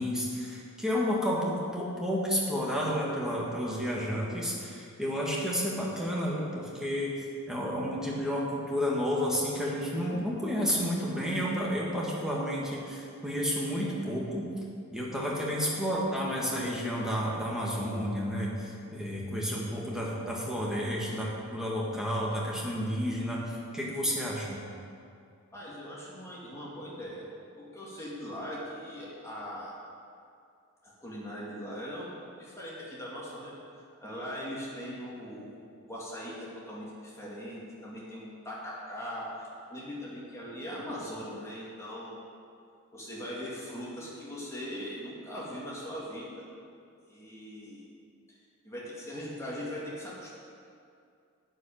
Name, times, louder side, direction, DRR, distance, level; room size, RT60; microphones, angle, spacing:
voice 1, 0.0-14.5 14.9-24.6, equal, 5° right, -5 dB, 1.9 m, -31 dB
voice 2, 25.5-27.2 27.6-29.7 30.8-32.1 32.4-33.5 34.0-42.2 42.9-46.4 47.1-47.9 48.3-48.4 48.6-50.4, equal, 15° left, -7 dB, 2.2 m, -40 dB
11.5 x 5.4 x 8.9 m, 2.4 s
head